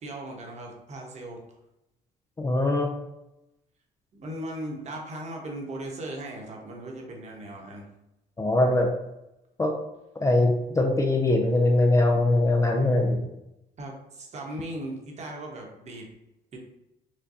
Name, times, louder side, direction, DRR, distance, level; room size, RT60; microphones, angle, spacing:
voice 1, 0.0-1.4 4.1-7.8 13.8-16.1 16.5-16.6, right 1 dB, 40° right, 0 dB, 1.1 m, -38 dB
voice 2, 2.4-2.9 8.4-8.9 9.6-9.7 10.2-13.2, left 2 dB, 20° left, 2 dB, 0.4 m, -22 dB
6.1 x 2.2 x 2.7 m, 0.89 s
cardioid pair, 110°, 17 cm